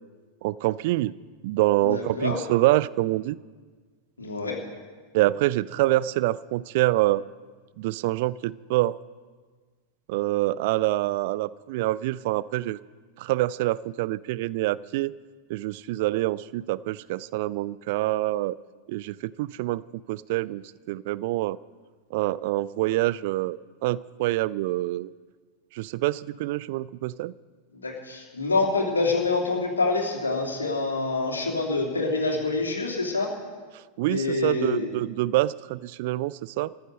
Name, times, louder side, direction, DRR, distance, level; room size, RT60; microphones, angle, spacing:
voice 1, 0.4-1.1 1.4-3.4 5.1-7.2 7.8-9.0 10.1-12.8 13.2-15.1 15.5-18.6 18.9-19.8 20.1-20.6 20.9-21.6 22.1-25.1 25.7-27.3 34.0-36.7, right 17 dB, 50° right, 20 dB, 0.3 m, -26 dB
voice 2, 1.8-2.4 4.2-4.6 27.8-33.3 34.1-34.9, left 3 dB, 75° left, 1 dB, 2.8 m, -26 dB
14.5 x 10.5 x 6.5 m, 1.5 s
figure-of-eight pair, 90°, 0 cm